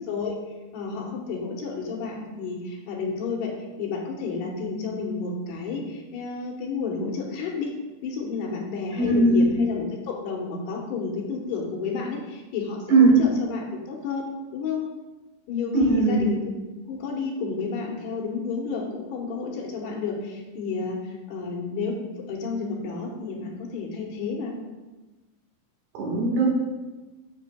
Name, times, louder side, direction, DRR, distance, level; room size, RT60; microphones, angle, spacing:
voice 1, 0.1-0.4 0.7-3.5 3.8-7.7 8.0-14.8 15.5-16.4 16.9-21.9 22.3-24.5, left 4 dB, 75° left, -1 dB, 3.0 m, -31 dB
voice 2, 8.9-9.5 12.9-13.2 15.7-16.3 26.0-26.5, right 3 dB, 75° right, -3 dB, 3.6 m, -19 dB
10.5 x 6.7 x 2.3 m, 1.2 s
omnidirectional pair, 4.9 m